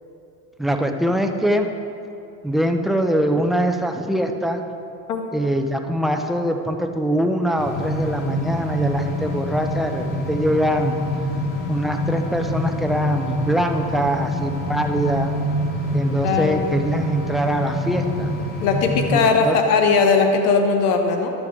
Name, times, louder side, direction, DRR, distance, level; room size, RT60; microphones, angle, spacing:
voice 1, 0.6-1.7 2.4-4.6 5.3-11.0 11.7-15.3 15.9-18.3 19.4-19.6, equal, ahead, 4 dB, 0.4 m, -23 dB
sound 1, 7.6-19.2, equal, 55° left, 2.0 m, -26 dB
voice 2, 16.2-16.7 18.6-21.3, left 4 dB, 80° left, 4 dB, 1.2 m, -19 dB
11.5 x 6.8 x 3.6 m, 2.7 s
supercardioid pair, 95°, 46 cm